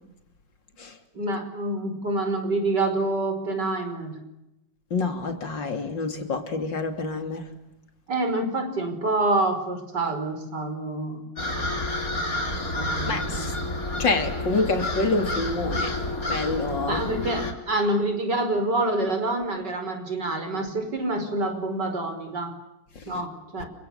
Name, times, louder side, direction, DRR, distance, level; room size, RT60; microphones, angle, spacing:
voice 1, 1.1-4.2 8.1-11.2 12.7-13.5 16.9-22.5 23.1-23.7, right 2 dB, 65° right, 5.7 m, -27 dB
voice 2, 4.9-7.5 13.1-13.5 14.0-17.0, left 3 dB, 80° left, 3.6 m, -27 dB
sound 1, 11.4-17.5, left 1 dB, 50° left, 4.4 m, -29 dB
30.0 x 26.0 x 7.3 m
omnidirectional pair, 2.0 m